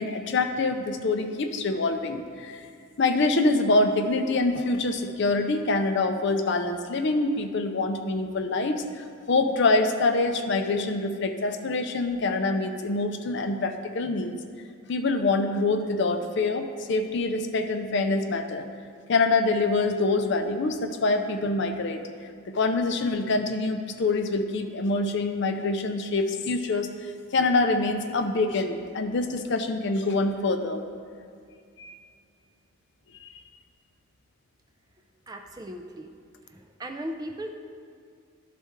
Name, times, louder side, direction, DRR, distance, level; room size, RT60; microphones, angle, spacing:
voice 1, 0.0-2.7 3.0-14.3 14.9-18.7 19.1-22.0 22.5-26.9 27.3-30.8 31.8-31.9 33.2-33.3, left 3 dB, 55° left, 7 dB, 0.5 m, -25 dB
voice 2, 35.3-36.1 36.5-37.5, right 1 dB, 15° right, 4 dB, 0.4 m, -37 dB
12.0 x 4.2 x 3.5 m, 2.3 s
head